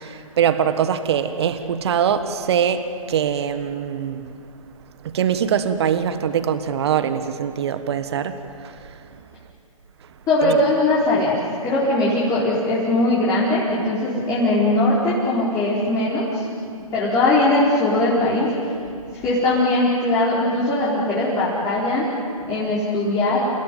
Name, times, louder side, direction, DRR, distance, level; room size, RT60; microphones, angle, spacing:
voice 1, 0.0-4.3 5.0-8.7 10.4-10.6, right 8 dB, 50° right, 10 dB, 1.5 m, -22 dB
voice 2, 10.3-11.4 11.6-16.5 16.9-18.5 19.2-22.1 22.5-23.5, left 2 dB, 20° left, -7 dB, 4.5 m, -20 dB
29.0 x 17.0 x 9.3 m, 2.5 s
figure-of-eight pair, 135°, 18 cm